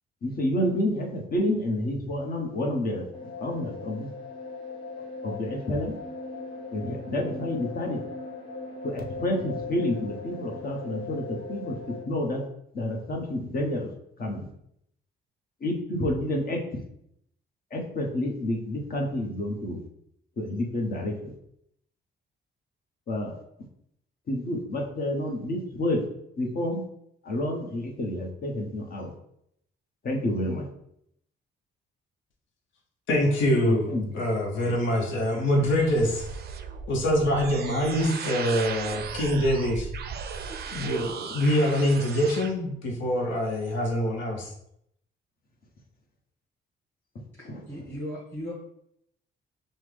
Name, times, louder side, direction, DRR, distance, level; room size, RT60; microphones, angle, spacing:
voice 1, 0.2-3.1 3.4-4.1 5.2-5.9 6.7-8.0 8.8-12.4 12.7-13.9 14.2-14.5 15.6-16.8 17.7-19.8 20.4-21.3 23.1-23.4 24.3-26.0 26.4-26.8 27.2-29.1 30.0-30.7 33.7-34.2 34.6-34.8 47.1-47.6, left 1 dB, 50° left, 0 dB, 1.1 m, -29 dB
sound 1, 3.1-12.0, left 3 dB, 25° left, 1.0 m, -39 dB
voice 2, 33.1-36.3 36.9-39.9 40.7-44.5, equal, 75° left, 0 dB, 0.9 m, -25 dB
sound 2, 34.8-42.5, right 6 dB, 55° right, 0.4 m, -37 dB
voice 3, 47.4-48.5, equal, 10° left, -9 dB, 1.4 m, -37 dB
5.6 x 2.1 x 3.3 m, 0.74 s
cardioid pair, 90°, 20 cm